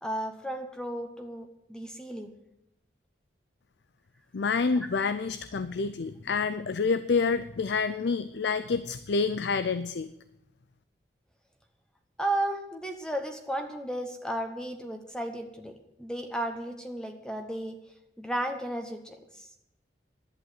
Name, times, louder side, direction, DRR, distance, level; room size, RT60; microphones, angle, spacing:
voice 1, 0.0-2.3 12.2-17.8 18.2-19.5, right 1 dB, 5° left, 5 dB, 0.9 m, -34 dB
voice 2, 4.3-10.1, left 4 dB, 75° left, 13 dB, 0.5 m, -28 dB
11.0 x 8.7 x 9.4 m, 0.85 s
head